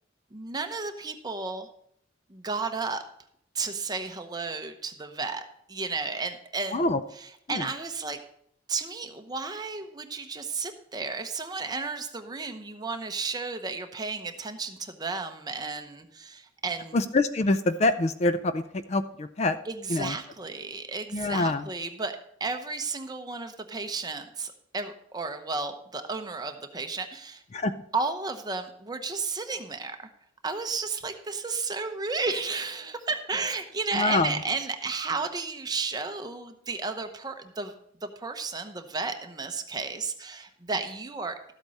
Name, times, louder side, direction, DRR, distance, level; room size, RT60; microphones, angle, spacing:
voice 1, 0.3-1.7 2.3-3.0 3.5-6.8 7.2-8.2 8.7-17.0 19.7-27.4 27.9-30.1 30.4-37.7 38.0-41.5, right 4 dB, 20° right, 6 dB, 0.8 m, -33 dB
voice 2, 16.9-19.6 19.9-20.2 21.1-21.6 27.5-27.7 33.9-34.3, left 2 dB, 35° left, 12 dB, 0.4 m, -25 dB
13.0 x 8.1 x 4.1 m, 0.69 s
head